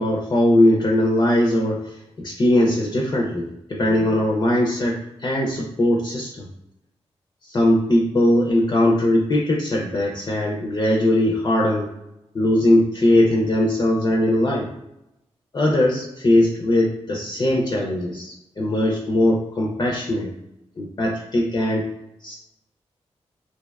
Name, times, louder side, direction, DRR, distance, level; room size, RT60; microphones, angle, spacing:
voice 1, 0.0-6.5 7.4-11.9 12.3-14.7 15.5-20.3 20.8-21.9 22.2-22.3, left 1 dB, 35° left, -2 dB, 0.4 m, -20 dB
2.5 x 2.2 x 2.3 m, 0.88 s
cardioid pair, 60°, 11 cm